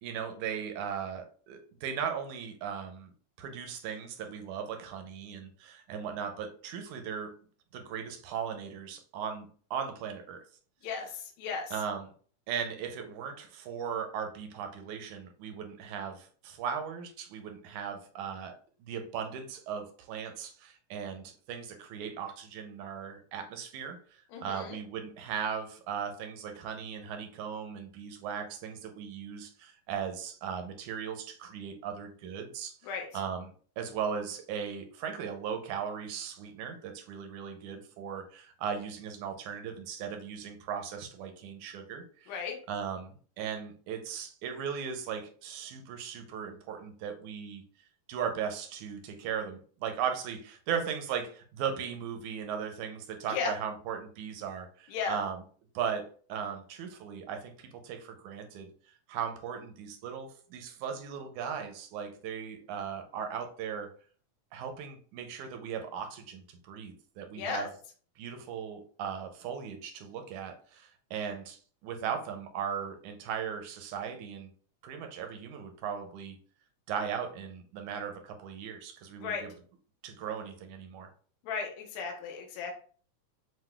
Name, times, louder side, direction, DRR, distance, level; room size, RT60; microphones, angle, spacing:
voice 1, 0.0-3.1 3.4-7.4 7.7-10.4 11.7-12.1 12.5-18.5 18.8-32.8 33.1-42.4 42.7-47.6 48.1-55.4 55.8-58.7 59.1-63.9 64.5-67.7 68.2-74.5 74.8-76.4 76.9-79.5 80.0-81.1, right 7 dB, 80° right, 5 dB, 2.0 m, -37 dB
voice 2, 10.8-11.7 24.3-24.8 32.8-33.1 42.3-42.6 53.3-53.5 54.9-55.2 67.4-67.7 79.2-79.4 81.4-82.7, left 5 dB, 70° left, 2 dB, 2.1 m, -35 dB
7.6 x 2.7 x 2.3 m, 0.44 s
omnidirectional pair, 3.7 m